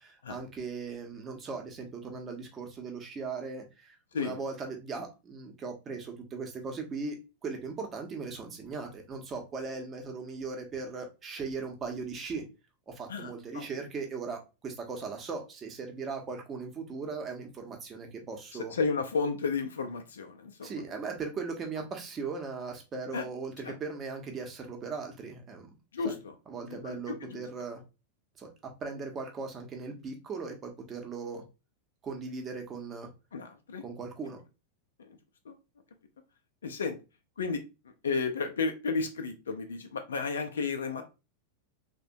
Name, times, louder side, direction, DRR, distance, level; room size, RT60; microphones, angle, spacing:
voice 1, 0.0-7.2 7.4-12.4 12.9-18.7 20.6-25.7 26.0-26.1 26.5-27.8 28.4-31.4 32.0-33.1 33.8-34.4, right 4 dB, 25° right, 3 dB, 0.7 m, -38 dB
voice 2, 13.1-13.7 18.7-20.8 23.1-23.3 23.6-23.7 25.9-26.3 26.7-27.4 33.3-33.8 35.0-35.2 35.5-35.6 36.6-37.0 37.4-37.6 38.0-41.0, left 4 dB, 65° left, 7 dB, 0.4 m, -33 dB
3.3 x 2.1 x 2.7 m, 0.28 s
figure-of-eight pair, 90°, 0 cm